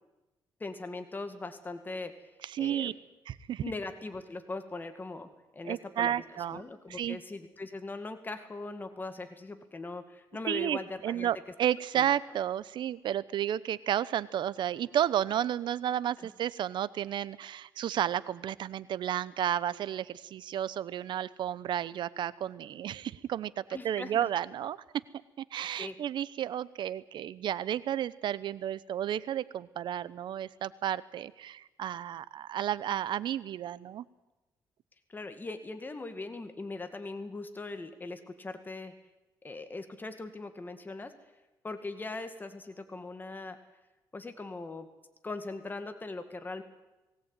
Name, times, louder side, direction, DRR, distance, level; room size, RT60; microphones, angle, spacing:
voice 1, 0.6-2.1 2.6-2.9 3.6-6.2 6.5-11.3 12.0-12.1 16.2-16.3 23.7-24.3 25.6-25.9 35.1-38.9 39.4-41.1 41.6-43.6 44.1-44.9 45.2-46.6, left 3 dB, 20° left, 8 dB, 2.2 m, -40 dB
voice 2, 2.4-2.9 3.3-3.6 5.6-6.6 6.9-7.2 10.5-25.0 25.4-34.0, right 10 dB, 70° right, 18 dB, 0.9 m, -32 dB
20.0 x 17.0 x 9.1 m, 1.0 s
cardioid pair, 95°, 8 cm